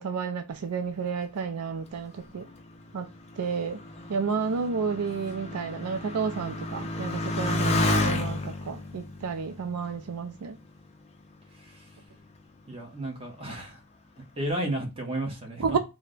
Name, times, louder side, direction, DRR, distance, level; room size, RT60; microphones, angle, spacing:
voice 1, 0.0-2.5 2.9-3.1 3.4-3.8 4.1-10.6 15.6-15.8, right 5 dB, 80° right, 0.4 m, -31 dB
Motorcycle, 1.9-10.9 11.7-12.2, left 2 dB, 30° left, 0.5 m, -32 dB
voice 2, 12.7-13.8 14.4-15.8, right 1 dB, 25° right, 1.0 m, -32 dB
3.3 x 2.1 x 3.7 m
head